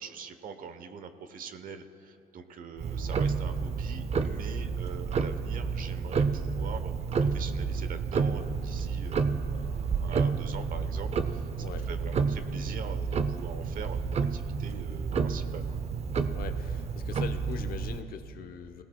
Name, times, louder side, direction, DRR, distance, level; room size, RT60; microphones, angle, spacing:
voice 1, 0.0-15.8, right 6 dB, 55° right, 9 dB, 1.1 m, -43 dB
Tick-tock, 2.8-18.0, right 5 dB, 40° right, 0.7 m, -30 dB
voice 2, 11.6-11.9 16.3-18.8, left 8 dB, 60° left, 8 dB, 1.0 m, -41 dB
26.0 x 17.5 x 2.3 m, 2.8 s
cardioid pair, 110°, 17 cm